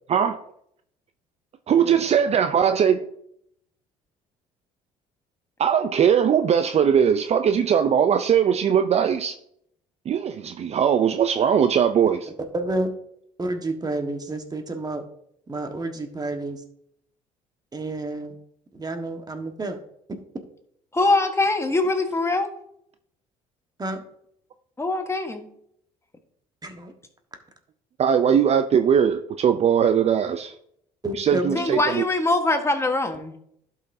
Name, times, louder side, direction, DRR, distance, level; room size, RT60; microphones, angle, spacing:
voice 1, 0.1-0.4 1.7-3.1 5.6-9.3 10.1-12.3 28.0-30.5 31.2-32.0, right 8 dB, 45° right, 9 dB, 0.5 m, -20 dB
voice 2, 12.5-12.9 13.4-15.0 15.5-16.6 17.7-18.3 18.7-19.8 23.8-24.0 26.6-26.9 31.0-31.7, right 2 dB, 25° right, 5 dB, 1.4 m, -29 dB
voice 3, 20.9-22.5 24.8-25.5 31.5-33.3, left 2 dB, 20° left, 5 dB, 1.3 m, -23 dB
11.5 x 5.6 x 2.7 m, 0.71 s
supercardioid pair, 70°, 15 cm